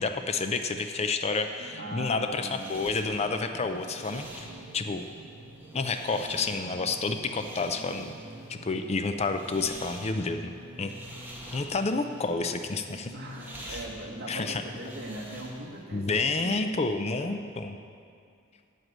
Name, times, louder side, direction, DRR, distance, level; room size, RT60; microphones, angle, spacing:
voice 1, 0.0-4.5 4.7-5.0 5.7-8.1 8.5-10.5 10.8-10.9 11.5-13.1 13.7-13.8 14.3-14.6 15.9-17.8, left 3 dB, 30° left, 7 dB, 0.4 m, -29 dB
sound 1, 1.6-15.7, right 1 dB, 65° right, 0.9 m, -48 dB
voice 2, 1.8-3.0 6.3-6.5 13.1-16.8 17.1-17.5, right 1 dB, 50° right, 0 dB, 1.5 m, -40 dB
sound 2, 2.0-15.8, right 1 dB, 10° right, 1.6 m, -47 dB
7.8 x 7.7 x 8.7 m, 2.3 s
head